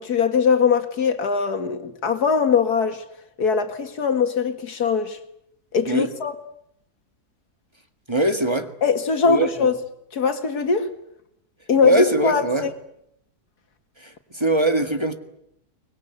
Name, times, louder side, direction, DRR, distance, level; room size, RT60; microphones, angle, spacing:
voice 1, 0.0-3.0 3.4-5.2 5.7-6.3 8.8-9.8 10.1-10.9 11.7-12.7, left 5 dB, 80° left, 2.4 m, -21 dB
voice 2, 8.1-8.7 9.3-9.7 11.8-12.7 14.0-15.1, right 2 dB, 20° right, 1.7 m, -22 dB
24.0 x 21.5 x 9.5 m
omnidirectional pair, 1.6 m